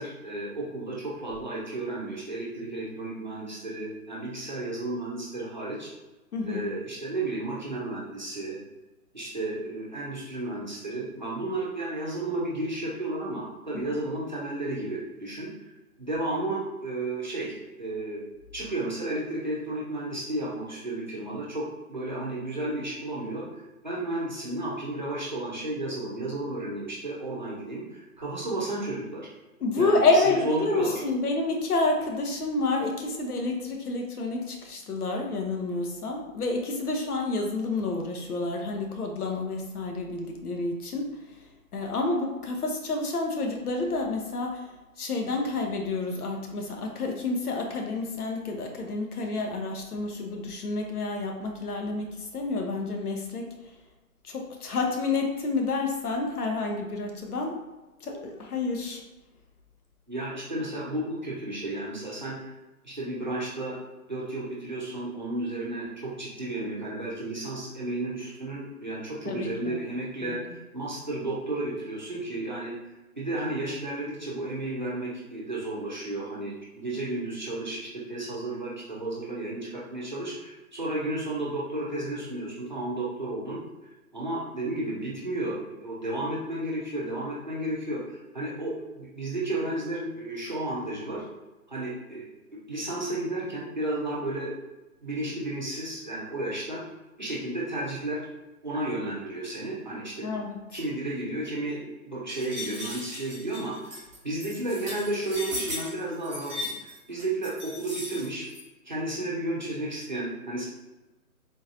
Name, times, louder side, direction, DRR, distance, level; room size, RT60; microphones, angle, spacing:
voice 1, 0.0-5.9 6.5-8.6 9.1-15.7 16.0-18.2 18.5-29.3 29.8-30.9 60.1-62.5 62.8-63.8 64.1-72.7 73.2-83.6 84.1-91.2 91.7-92.2 92.7-94.5 95.0-96.8 97.2-98.2 98.6-100.3 100.7-104.0 104.2-108.4 108.8-110.7, right 2 dB, 30° right, -6 dB, 0.6 m, -33 dB
voice 2, 6.3-6.7 13.7-13.8 29.6-41.3 41.7-44.7 45.0-53.7 54.2-57.6 58.0-59.0 69.3-69.8 70.2-70.4 100.2-100.8, left 3 dB, 85° left, 2 dB, 0.9 m, -29 dB
Rain vidrio, 102.3-108.6, left 1 dB, 15° right, 1.1 m, -37 dB
3.8 x 2.7 x 2.7 m, 1.1 s
hypercardioid pair, 175°, 44 cm